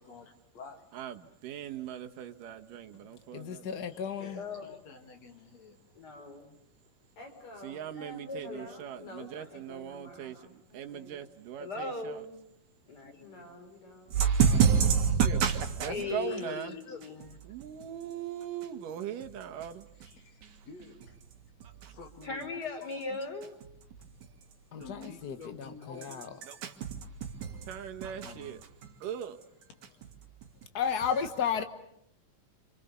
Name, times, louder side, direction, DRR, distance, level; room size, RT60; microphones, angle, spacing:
voice 1, 0.0-0.8 3.9-6.1 16.0-16.6 16.9-17.0 19.9-21.2 21.9-22.5 22.8-23.2 24.8-26.4, left 5 dB, 55° left, 3.5 m, -49 dB
voice 2, 0.9-3.8 7.6-10.4 10.7-12.2 15.3-15.4 15.8-16.7 17.5-19.9 27.7-28.6 29.0-29.4, right 10 dB, 80° right, 2.9 m, -40 dB
voice 3, 3.3-4.4 24.7-26.3 28.2-28.6 30.7-31.6, left 7 dB, 70° left, 0.9 m, -33 dB
voice 4, 4.2-4.7 6.0-6.5 8.0-8.8 11.6-12.3 12.9-13.4 15.9-17.1 22.2-23.5, left 3 dB, 30° left, 4.1 m, -38 dB
voice 5, 7.2-7.9 8.4-11.3 13.2-14.3, left 2 dB, 90° left, 7.3 m, -50 dB
voice 6, 14.1-15.9 20.0-20.1 20.4-20.6 21.6-21.9 24.2-24.3 26.5-27.7 28.0-29.0, right 7 dB, 65° right, 3.2 m, -28 dB
28.5 x 27.0 x 6.9 m
omnidirectional pair, 3.8 m